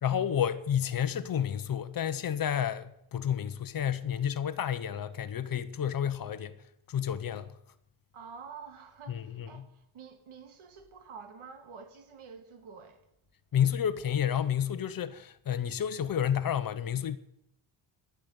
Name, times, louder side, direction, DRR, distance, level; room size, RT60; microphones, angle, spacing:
voice 1, 0.0-6.5 6.9-7.5 9.1-9.6 13.5-17.2, left 9 dB, 45° left, 0.9 m, -30 dB
voice 2, 8.1-13.0, right 5 dB, 85° right, 2.5 m, -48 dB
12.5 x 11.0 x 8.2 m
wide cardioid pair, 175°, 48 cm